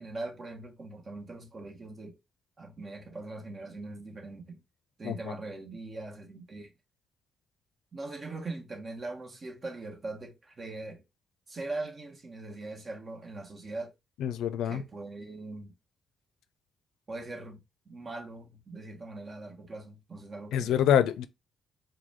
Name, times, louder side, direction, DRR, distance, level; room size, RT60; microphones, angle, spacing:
voice 1, 0.0-2.2 2.6-4.6 5.0-6.7 7.9-11.0 11.5-13.9 14.6-15.7 17.1-20.8, right 2 dB, 35° right, 1.2 m, -41 dB
voice 2, 14.2-14.8 20.5-21.3, left 10 dB, 85° left, 0.5 m, -26 dB
4.7 x 2.2 x 3.6 m
cardioid pair, 90°, 0 cm